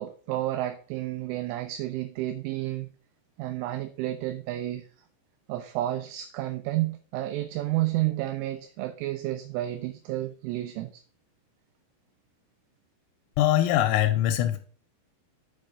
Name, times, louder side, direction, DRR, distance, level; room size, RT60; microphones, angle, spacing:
voice 1, 0.0-2.9 3.4-4.8 5.5-11.0, right 15 dB, 85° right, 3.0 m, -31 dB
voice 2, 13.4-14.6, left 12 dB, 90° left, 3.3 m, -22 dB
7.5 x 4.3 x 5.1 m
omnidirectional pair, 5.9 m